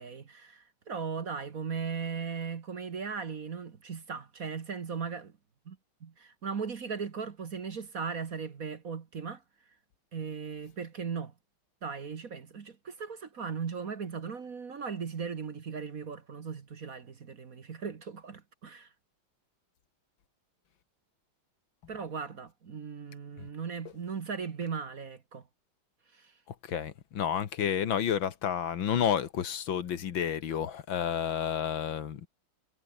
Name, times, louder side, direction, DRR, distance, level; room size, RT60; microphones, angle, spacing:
voice 1, 0.0-5.3 5.7-9.4 10.1-11.3 11.8-18.9 21.9-25.4 26.1-26.3, right 6 dB, 45° right, 1.7 m, -38 dB
voice 2, 26.6-32.3, left 8 dB, 65° left, 2.1 m, -30 dB
omnidirectional pair, 2.3 m